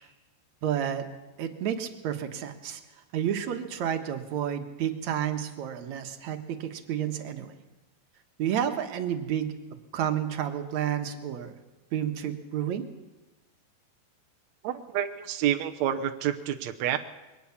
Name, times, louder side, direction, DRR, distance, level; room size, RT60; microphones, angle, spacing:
voice 1, 0.6-1.1 1.4-2.8 3.1-7.6 8.4-9.5 9.9-11.5 11.9-12.9, right 9 dB, 60° right, 7 dB, 2.2 m, -30 dB
voice 2, 14.6-17.0, right 10 dB, 80° right, 7 dB, 1.5 m, -28 dB
22.5 x 18.0 x 7.2 m, 1.1 s
omnidirectional pair, 4.5 m